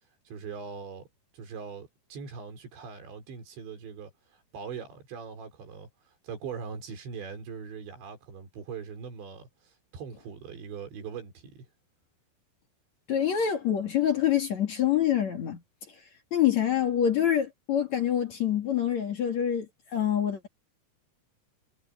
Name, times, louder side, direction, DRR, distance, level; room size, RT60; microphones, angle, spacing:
voice 1, 0.3-1.1 1.3-4.1 4.5-5.9 6.2-11.7, right 6 dB, 85° right, 7.0 m, -41 dB
voice 2, 13.1-15.6 16.3-19.7 19.9-20.5, left 10 dB, 50° left, 2.8 m, -26 dB
omnidirectional pair, 5.0 m